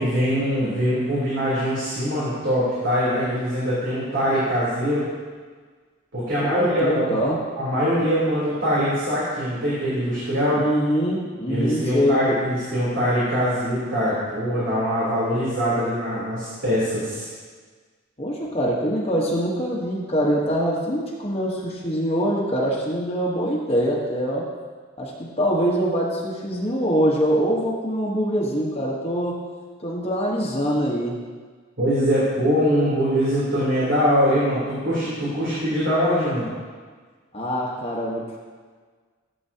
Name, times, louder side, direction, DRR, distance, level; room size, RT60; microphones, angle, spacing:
voice 1, 0.0-5.0 6.1-10.6 11.5-17.3 31.8-36.5, equal, 70° right, -10 dB, 3.3 m, -23 dB
voice 2, 6.4-7.4 10.5-12.2 18.2-24.5 25.0-29.4 29.8-31.2 37.3-38.4, equal, 30° left, -3 dB, 1.2 m, -24 dB
15.5 x 7.7 x 2.9 m, 1.5 s
head